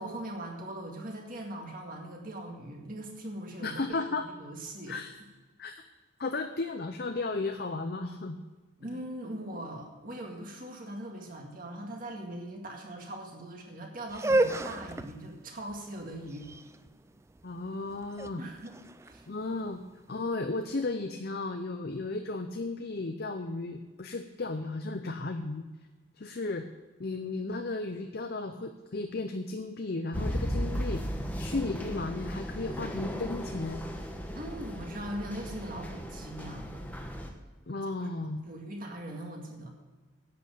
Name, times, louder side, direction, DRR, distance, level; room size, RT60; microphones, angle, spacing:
voice 1, 0.0-5.0 8.8-16.5 18.4-19.2 34.3-36.8 38.0-39.7, right 1 dB, 40° right, 1 dB, 2.0 m, -41 dB
voice 2, 3.6-4.3 4.9-5.1 5.6-5.7 6.2-8.4 17.4-18.4 19.3-19.8 20.1-25.6 26.2-26.6 27.0-33.8 37.7-38.4, left 3 dB, 50° left, 6 dB, 0.6 m, -34 dB
sound 1, 14.1-20.0, right 2 dB, 15° right, 0.3 m, -32 dB
sound 2, 30.1-37.3, equal, 10° left, 1.0 m, -36 dB
10.5 x 8.0 x 6.9 m, 1.3 s
head